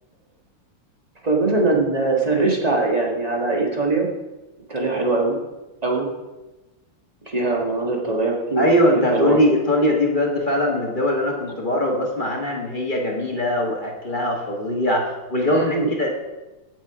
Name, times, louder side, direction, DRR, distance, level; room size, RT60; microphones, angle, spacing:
voice 1, 1.2-4.1 4.7-5.4 5.8-6.1 7.3-8.6 8.9-9.4 15.5-15.9, right 3 dB, 20° right, 0 dB, 1.5 m, -21 dB
voice 2, 8.6-16.1, left 1 dB, 25° left, 0 dB, 1.3 m, -21 dB
16.5 x 6.2 x 4.8 m, 1.1 s
omnidirectional pair, 2.4 m